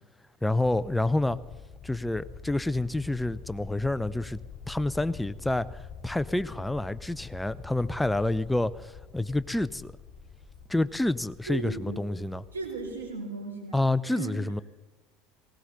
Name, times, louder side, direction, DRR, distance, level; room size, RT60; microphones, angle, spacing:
voice 1, 0.4-1.4 1.8-4.4 4.7-9.9 10.7-12.4 13.7-14.6, left 2 dB, 5° left, 0.6 m, -28 dB
sound 1, 0.6-13.1, left 5 dB, 35° left, 3.7 m, -46 dB
voice 2, 11.5-12.0 12.5-13.8 14.1-14.3, right 4 dB, 85° right, 5.2 m, -36 dB
19.5 x 17.5 x 4.0 m
hypercardioid pair, 75°, 0 cm